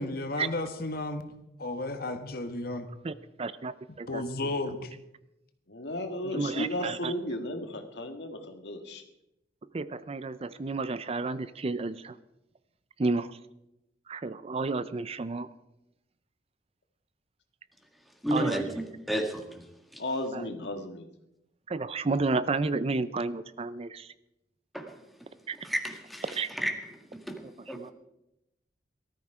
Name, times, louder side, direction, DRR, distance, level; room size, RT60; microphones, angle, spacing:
voice 1, 0.0-1.3 1.6-2.9 4.1-4.9, left 2 dB, 60° left, 8 dB, 1.5 m, -33 dB
voice 2, 3.0-3.7 4.0-4.2 6.2-7.1 9.7-12.1 13.0-13.3 14.1-15.5 18.3-18.6 20.3-20.5 21.7-24.1 25.5-25.6 26.3-26.5 27.8-27.9, right 3 dB, 35° right, 15 dB, 0.5 m, -31 dB
voice 3, 5.7-9.0 20.0-21.1, left 1 dB, 80° left, 6 dB, 1.8 m, -34 dB
voice 4, 18.2-19.6 19.9-20.0 24.7-24.9 25.6-26.8 27.1-27.4 27.7-27.8, equal, ahead, 4 dB, 1.8 m, -32 dB
18.5 x 13.5 x 4.9 m, 0.89 s
head